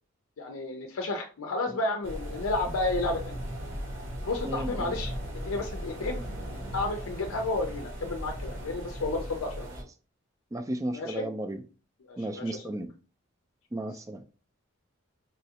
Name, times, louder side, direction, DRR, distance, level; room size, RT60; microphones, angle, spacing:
voice 1, 0.4-3.4 4.2-5.1 5.4-6.2 6.7-9.7 10.9-11.3 12.1-12.6, left 2 dB, 85° left, 0.5 m, -31 dB
sound 1, 2.0-9.8, equal, 65° right, 1.1 m, -37 dB
voice 2, 4.4-4.9 10.5-11.6 12.2-12.9 13.7-14.2, right 1 dB, 15° right, 0.3 m, -34 dB
4.0 x 2.3 x 2.8 m
head